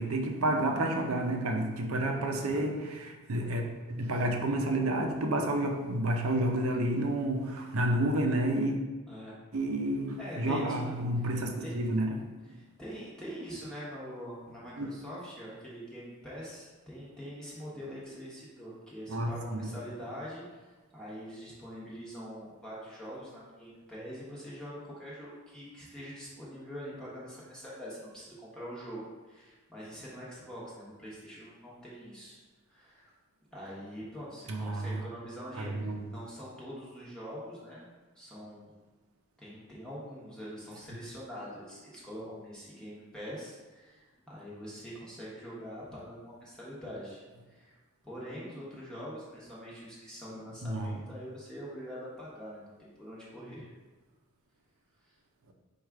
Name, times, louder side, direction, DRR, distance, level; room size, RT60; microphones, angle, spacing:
voice 1, 0.0-8.8 9.5-12.3 14.8-14.9 19.1-19.8 34.5-35.0 35.6-36.0 50.6-51.0, right 1 dB, 75° right, 3 dB, 0.6 m, -30 dB
voice 2, 9.1-9.4 10.2-10.9 11.6-11.7 12.5-32.4 32.7-33.1 33.5-37.8 38.1-38.7 39.4-47.8 48.0-53.7 55.0-55.1, equal, 5° left, -8 dB, 1.0 m, -44 dB
4.7 x 2.4 x 4.6 m, 1.3 s
head